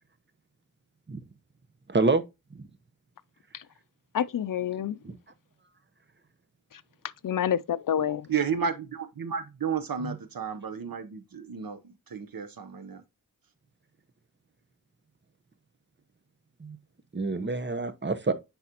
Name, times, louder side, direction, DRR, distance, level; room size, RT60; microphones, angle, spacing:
voice 1, 1.9-2.2 5.0-5.2 10.0-10.2 16.6-16.8 17.1-18.3, right 3 dB, 35° right, 0.9 m, -27 dB
voice 2, 4.1-5.0 6.7-6.8 7.2-8.3, left 9 dB, 70° left, 0.5 m, -28 dB
voice 3, 8.3-13.0, right 6 dB, 80° right, 0.9 m, -32 dB
9.7 x 4.1 x 2.9 m
wide cardioid pair, 75°, 34 cm